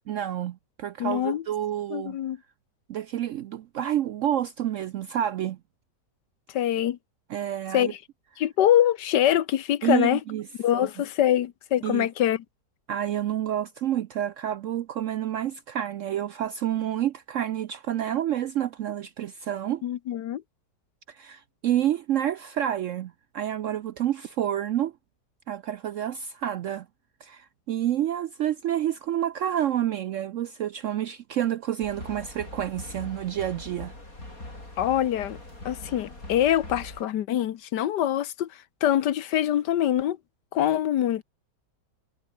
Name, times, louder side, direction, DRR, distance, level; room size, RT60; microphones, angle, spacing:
voice 1, 0.1-2.2 2.9-5.6 7.3-7.9 9.8-10.4 10.7-10.9 11.8-12.1 12.9-19.8 21.1-24.9 25.5-26.9 27.2-33.9, right 11 dB, 70° right, 0.7 m, -29 dB
voice 2, 1.0-1.4 1.9-2.4 6.5-7.0 7.7-8.0 8.4-10.2 10.6-12.4 19.8-20.4 34.8-35.4 35.6-40.2 40.5-41.2, left 11 dB, 80° left, 1.5 m, -24 dB
sound 1, 31.8-37.0, left 2 dB, 55° left, 8.3 m, -42 dB
omnidirectional pair, 1.8 m